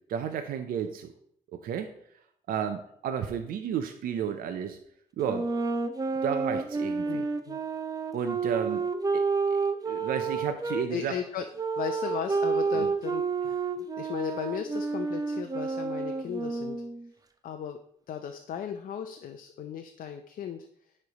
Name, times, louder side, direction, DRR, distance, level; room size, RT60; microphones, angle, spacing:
voice 1, 0.1-1.1 1.5-1.9 2.5-4.8 5.2-5.5 6.2-7.2 8.1-8.8 9.1-9.3 9.9-11.2 12.7-12.9, right 8 dB, 75° right, 7 dB, 0.5 m, -32 dB
sound 1, 5.2-10.9 11.6-17.1, right 4 dB, 25° right, 0.6 m, -30 dB
voice 2, 7.1-7.6 10.9-11.5 11.8-16.8 17.4-17.8 18.1-20.7, left 9 dB, 70° left, 6 dB, 0.5 m, -36 dB
9.8 x 3.3 x 4.0 m, 0.67 s
cardioid pair, 75°, 15 cm